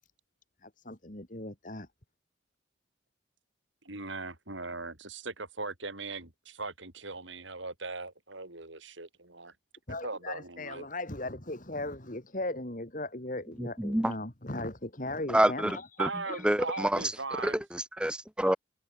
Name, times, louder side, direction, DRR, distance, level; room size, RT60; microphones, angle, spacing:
voice 1, 0.6-1.9 9.9-15.9 16.3-16.8, left 2 dB, 40° left, 2.8 m, -38 dB
voice 2, 3.8-9.5 10.0-10.9 16.0-17.6, right 3 dB, 75° right, 6.4 m, -39 dB
voice 3, 13.6-14.1 15.3-16.1 16.4-17.0 17.4-18.6, right 1 dB, 5° right, 0.8 m, -27 dB
head